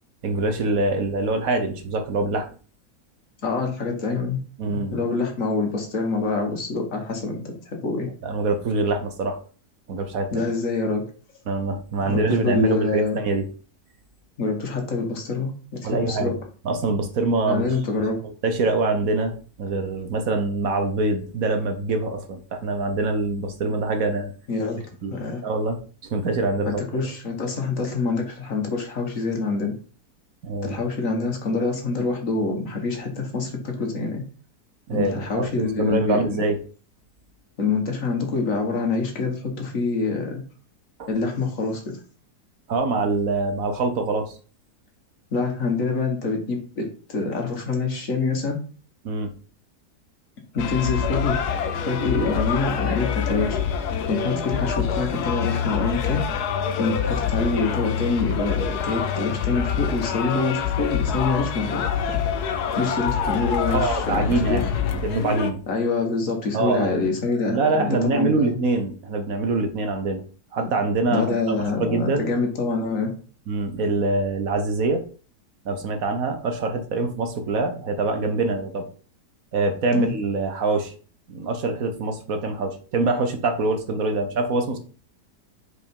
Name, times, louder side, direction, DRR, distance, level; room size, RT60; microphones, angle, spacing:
voice 1, 0.2-2.5 4.6-4.9 8.2-9.4 9.9-10.4 11.5-13.5 15.8-16.4 16.6-17.7 17.9-24.3 25.0-25.2 25.4-25.8 26.1-26.8 30.4-30.8 34.9-36.6 41.0-41.1 42.7-44.3 49.0-49.3 63.7-64.7 65.0-65.6 66.5-67.1 67.5-70.2 70.5-71.4 71.8-72.3 73.5-75.0 75.6-78.9 79.5-80.9 81.3-84.8, right 3 dB, 65° right, 6 dB, 1.4 m, -24 dB
voice 2, 3.4-4.4 4.7-8.1 10.3-11.0 12.0-13.2 14.4-16.3 17.5-18.2 24.5-24.8 25.1-25.4 26.6-29.7 30.6-34.2 34.9-36.4 37.6-40.4 41.1-42.0 45.3-48.6 50.5-51.4 51.8-53.6 54.1-56.2 56.8-62.2 62.8-64.6 65.7-68.6 71.1-73.2 79.9-80.1, left 4 dB, 55° left, 3 dB, 1.8 m, -26 dB
sound 1, 50.6-65.5, left 7 dB, 80° left, 1.3 m, -26 dB
5.0 x 4.9 x 5.4 m, 0.38 s
omnidirectional pair, 1.7 m